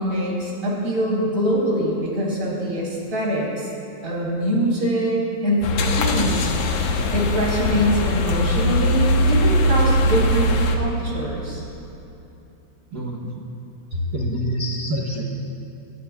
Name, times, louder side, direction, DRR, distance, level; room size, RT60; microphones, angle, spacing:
voice 1, 0.0-3.7 4.0-6.5 7.1-11.6 13.9-14.0, equal, 25° right, -4 dB, 4.4 m, -24 dB
sound 1, 5.6-10.8, left 1 dB, 65° left, 1.9 m, -20 dB
voice 2, 12.9-13.5 14.1-15.2, equal, 60° right, -3 dB, 1.0 m, -27 dB
25.5 x 17.5 x 2.3 m, 2.9 s
omnidirectional pair, 3.4 m